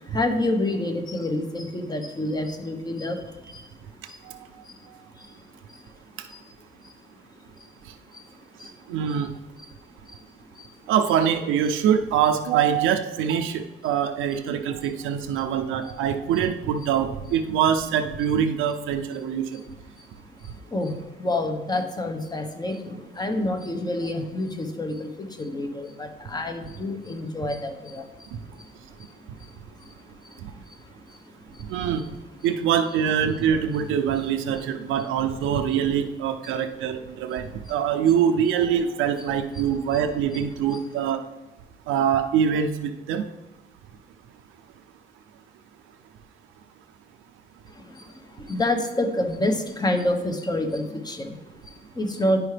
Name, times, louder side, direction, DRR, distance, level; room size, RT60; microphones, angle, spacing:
voice 1, 0.0-3.7 4.1-4.2 4.6-4.8 5.2-5.4 5.7-5.8 6.3-6.4 6.8-6.9 8.1-8.3 8.6-8.7 9.6-9.7 10.1-10.2 10.5-10.7 19.5-19.6 20.0-20.1 20.7-28.3 28.6-29.1 29.4-29.5 29.8-29.9 30.2-30.4 30.7-30.8 31.1-31.2 31.5-31.6 32.0-32.1 34.6-34.7 36.4-36.6 37.6-37.7 39.5-39.6 47.7-52.4, left 1 dB, 20° left, 6 dB, 1.0 m, -29 dB
voice 2, 8.9-9.3 10.9-19.4 31.7-32.0 32.4-41.2 41.9-43.2, right 8 dB, 85° right, 6 dB, 0.5 m, -24 dB
9.8 x 4.8 x 3.3 m, 1.1 s
cardioid pair, 90°, 20 cm